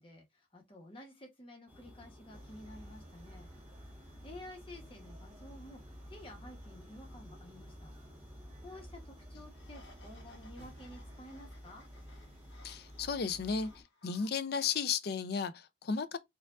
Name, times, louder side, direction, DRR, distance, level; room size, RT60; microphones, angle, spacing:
voice 1, 0.0-3.5 4.2-5.8 6.1-7.9 8.6-11.9, left 1 dB, 30° left, 1.0 m, -52 dB
sound 1, 1.7-13.8, left 1 dB, 10° right, 0.8 m, -57 dB
sound 2, 2.3-13.7, equal, 35° right, 1.2 m, -53 dB
sound 3, 9.6-15.3, left 2 dB, 80° left, 1.3 m, -62 dB
voice 2, 12.6-13.7 14.0-16.2, left 6 dB, 60° left, 0.4 m, -34 dB
4.5 x 2.4 x 2.4 m
head